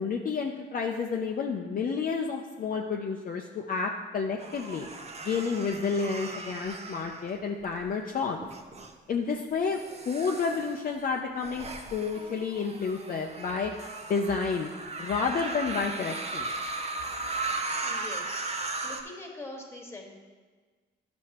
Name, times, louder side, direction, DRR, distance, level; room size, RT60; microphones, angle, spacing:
voice 1, 0.0-4.9 5.2-8.4 9.1-9.8 10.1-11.7 11.9-13.7 14.1-14.7 15.0-16.5, left 5 dB, 45° left, 1 dB, 0.6 m, -30 dB
sound 1, 4.4-7.8 8.4-8.9 9.6-19.0, right 3 dB, 30° right, 0.7 m, -37 dB
voice 2, 17.8-18.4 18.8-20.1, left 2 dB, 10° left, 1 dB, 1.5 m, -43 dB
10.5 x 6.1 x 2.9 m, 1.4 s
cardioid pair, 90°, 20 cm